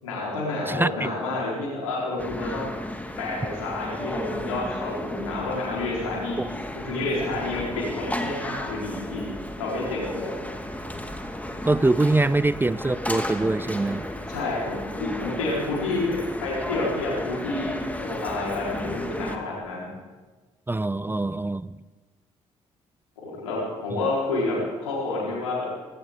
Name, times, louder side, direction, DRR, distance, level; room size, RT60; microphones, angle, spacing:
voice 1, 0.0-2.6 3.2-6.4 6.7-9.2 9.6-10.5 14.3-16.1 16.4-19.9 23.2-25.6, left 2 dB, 85° left, -5 dB, 4.1 m, -29 dB
voice 2, 0.7-1.1 6.4-6.5 11.7-14.1 20.7-21.7, right 2 dB, 15° right, 17 dB, 0.4 m, -23 dB
sound 1, 2.2-19.4, left 1 dB, 10° left, 1.8 m, -34 dB
19.0 x 16.5 x 3.7 m, 1.3 s
hypercardioid pair, 45°, 17 cm